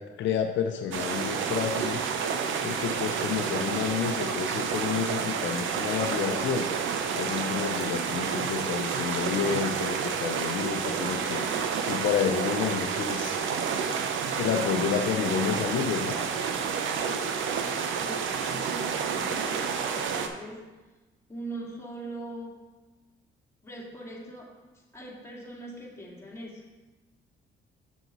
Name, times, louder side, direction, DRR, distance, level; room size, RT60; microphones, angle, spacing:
voice 1, 0.0-2.0 2.6-6.7 7.1-13.4 14.4-16.2, left 7 dB, 75° left, 4 dB, 0.6 m, -30 dB
sound 1, 0.9-20.3, right 6 dB, 75° right, 0.7 m, -30 dB
voice 2, 17.0-20.6 21.3-22.7 23.6-24.5 24.9-26.6, right 1 dB, 15° left, -4 dB, 2.2 m, -42 dB
7.0 x 6.0 x 4.0 m, 1.2 s
cardioid pair, 90°, 20 cm